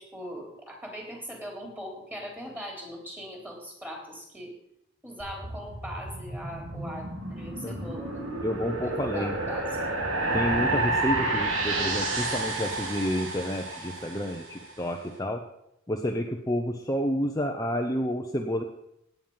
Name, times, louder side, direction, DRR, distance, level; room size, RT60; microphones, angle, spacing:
voice 1, 0.0-4.5 5.0-8.4 8.8-10.0, equal, 10° right, 0 dB, 3.7 m, -40 dB
sound 1, 5.2-14.6, right 2 dB, 85° right, 3.1 m, -30 dB
voice 2, 8.4-9.3 10.3-15.4 15.9-18.6, equal, 20° left, 2 dB, 0.9 m, -30 dB
16.5 x 9.5 x 5.6 m, 0.80 s
head